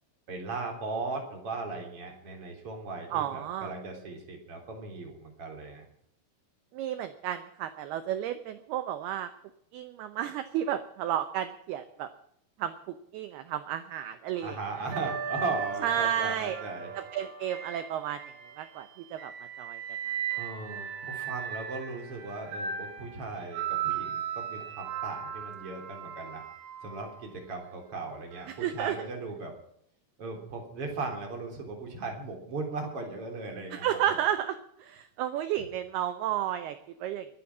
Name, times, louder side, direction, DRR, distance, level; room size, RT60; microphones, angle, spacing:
voice 1, 0.3-5.8 14.4-16.9 20.4-26.4 26.8-29.5 30.2-34.2, right 3 dB, 30° right, 2 dB, 3.9 m, -37 dB
voice 2, 3.1-3.7 6.7-9.3 9.7-12.1 12.6-14.6 15.8-16.6 17.0-19.3 19.6-19.8 20.1-20.2 28.5-29.0 33.7-37.3, right 11 dB, 90° right, 10 dB, 2.2 m, -32 dB
sound 1, 14.4-18.7 19.2-27.3 28.3-28.6, right 8 dB, 65° right, 4.3 m, -37 dB
23.0 x 10.0 x 6.1 m, 0.71 s
omnidirectional pair, 5.7 m